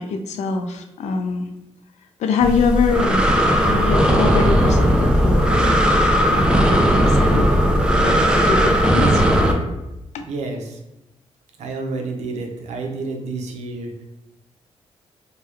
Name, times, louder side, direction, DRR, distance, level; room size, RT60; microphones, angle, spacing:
voice 1, 0.0-1.5 2.2-3.3 3.7-5.8 6.3-7.5 8.0-9.2, left 4 dB, 85° left, 5 dB, 0.4 m, -24 dB
Breathing, 2.4-9.5, equal, 10° right, 0.4 m, -17 dB
voice 2, 10.2-10.8 11.6-13.9, right 3 dB, 85° right, 3 dB, 0.6 m, -29 dB
2.9 x 2.2 x 3.3 m, 0.95 s
cardioid pair, 115°, 11 cm